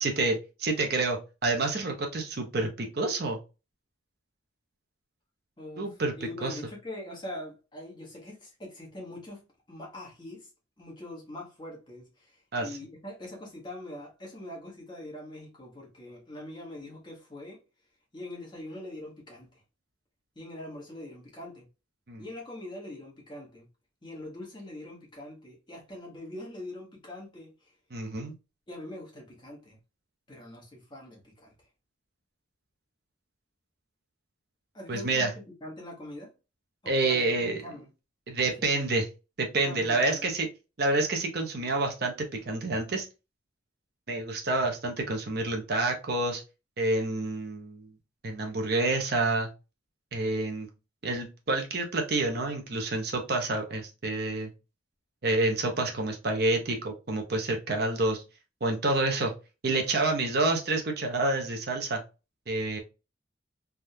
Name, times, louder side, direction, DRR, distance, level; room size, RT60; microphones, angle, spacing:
voice 1, 0.0-3.4 5.8-6.1 6.4-6.6 12.5-12.7 22.1-22.2 27.9-28.3 34.9-35.3 36.9-37.6 38.3-39.1 39.4-40.5 40.8-43.1 44.1-46.4 46.8-47.9 48.2-49.5 50.1-50.7 51.0-54.5 55.2-58.2 58.6-59.3 59.6-62.0 62.5-62.8, right 2 dB, 50° right, 0.7 m, -28 dB
voice 2, 5.6-9.4 9.7-10.5 10.8-17.6 18.1-19.6 20.3-21.7 22.2-23.7 24.0-27.7 28.7-29.8 30.3-31.5 34.7-36.3 36.8-37.9 39.6-40.3, left 1 dB, 25° left, 1.2 m, -43 dB
3.4 x 2.3 x 2.7 m
head